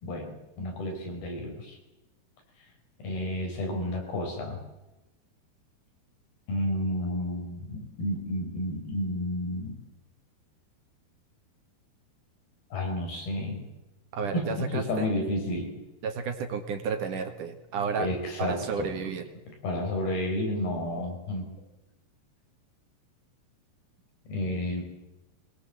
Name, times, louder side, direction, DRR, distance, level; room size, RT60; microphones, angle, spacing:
voice 1, 0.0-1.8 3.0-4.6 6.5-9.8 12.7-13.7 14.3-15.8 18.0-18.9 19.6-21.5 24.3-24.8, left 1 dB, 70° left, 3 dB, 6.5 m, -31 dB
voice 2, 14.1-15.1 16.0-18.1 18.4-19.2, right 5 dB, 60° right, 6 dB, 2.8 m, -32 dB
22.5 x 19.5 x 7.7 m, 1.0 s
omnidirectional pair, 4.5 m